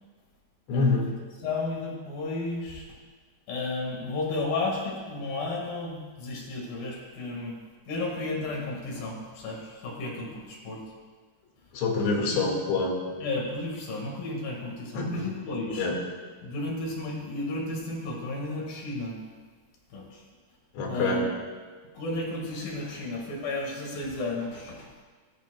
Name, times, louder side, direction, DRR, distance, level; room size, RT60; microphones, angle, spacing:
voice 1, 0.7-1.1 11.7-13.0 15.0-15.2 15.8-16.0 20.8-21.2, left 3 dB, 90° left, -1 dB, 4.1 m, -26 dB
voice 2, 1.4-2.9 3.5-7.6 7.9-10.8 12.3-12.5 13.2-15.9 16.4-19.2 19.9-20.2 20.9-21.3 21.9-24.9, left 2 dB, 60° left, -1 dB, 3.2 m, -33 dB
17.5 x 11.5 x 2.2 m, 1.4 s
omnidirectional pair, 4.9 m